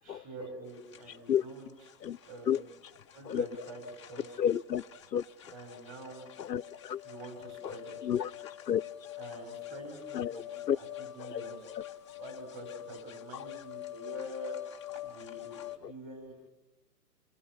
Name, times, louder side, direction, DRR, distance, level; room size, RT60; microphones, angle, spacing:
voice 1, 0.0-1.7 2.2-2.7 3.1-4.3 5.5-6.3 7.0-8.1 9.2-11.6 12.2-14.6 15.0-16.5, right 1 dB, 15° right, 5.9 m, -46 dB
sound 1, 0.7-15.8, left 14 dB, 20° left, 0.8 m, -46 dB
voice 2, 4.4-4.8 5.1-5.2 6.4-7.0 7.6-8.8 10.1-10.8 11.2-11.4 13.3-13.4 15.8-15.9, left 9 dB, 85° left, 0.9 m, -31 dB
29.5 x 22.0 x 6.3 m
hypercardioid pair, 165°, 49 cm